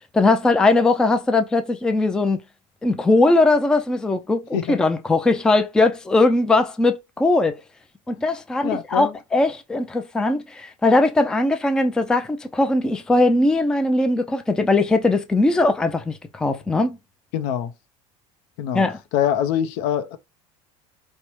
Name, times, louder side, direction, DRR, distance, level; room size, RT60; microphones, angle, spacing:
voice 1, 0.1-2.4 2.8-7.6 8.1-17.0 18.7-19.0, left 2 dB, 5° left, 0.3 m, -20 dB
voice 2, 8.6-9.1 17.3-17.7 18.6-18.8 19.1-20.2, left 10 dB, 65° left, 0.6 m, -24 dB
4.5 x 2.0 x 3.0 m
supercardioid pair, 125°, 15 cm